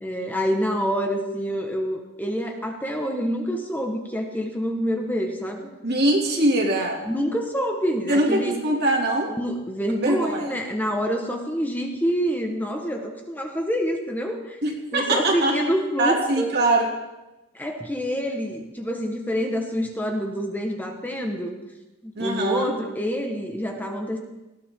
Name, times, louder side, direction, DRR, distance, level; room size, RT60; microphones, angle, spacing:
voice 1, 0.0-5.7 7.0-8.6 9.4-14.6 14.9-16.5 17.5-21.6 22.0-24.2, equal, 10° left, 2 dB, 1.5 m, -27 dB
voice 2, 5.8-7.0 8.1-9.3 10.0-10.5 14.6-15.6 16.0-16.9 22.1-22.7, right 1 dB, 45° right, -1 dB, 2.9 m, -22 dB
20.0 x 15.5 x 3.8 m, 1.0 s
head